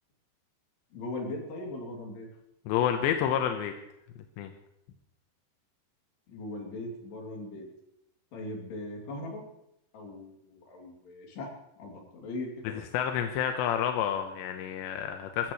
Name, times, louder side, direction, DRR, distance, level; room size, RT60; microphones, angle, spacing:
voice 1, 0.9-2.3 6.3-7.7 8.3-9.4 9.9-12.8, left 2 dB, 65° left, 0 dB, 5.0 m, -39 dB
voice 2, 2.7-3.7 4.4-4.5 12.9-15.5, left 9 dB, 85° left, 6 dB, 3.1 m, -29 dB
23.0 x 14.5 x 3.2 m, 0.84 s
omnidirectional pair, 5.1 m